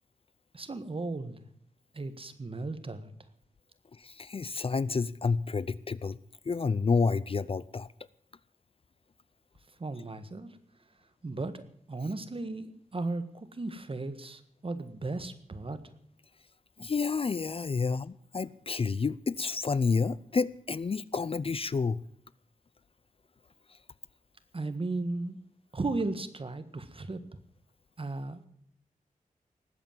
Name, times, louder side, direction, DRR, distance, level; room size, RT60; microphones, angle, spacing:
voice 1, 0.5-1.5 1.9-3.1 9.8-10.6 11.2-15.8 24.5-25.4 25.7-27.2 28.0-28.5, right 3 dB, 40° right, 1.6 m, -35 dB
voice 2, 3.9-6.2 6.5-7.9 16.8-22.0, left 4 dB, 40° left, 0.5 m, -29 dB
19.5 x 8.3 x 7.4 m
wide cardioid pair, 85°, 14 cm